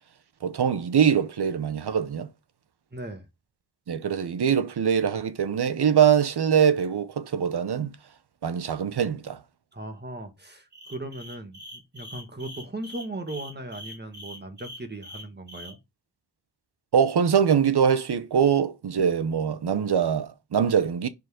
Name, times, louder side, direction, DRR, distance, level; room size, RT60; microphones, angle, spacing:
voice 1, 0.4-2.3 3.9-8.0 8.4-9.4 16.9-21.1, right 8 dB, 75° right, 0.8 m, -23 dB
voice 2, 2.9-3.3 9.7-15.8, right 1 dB, 25° right, 1.8 m, -38 dB
sound 1, 10.7-15.7, left 1 dB, 45° right, 2.9 m, -43 dB
6.8 x 4.0 x 6.3 m
wide cardioid pair, 100°, 39 cm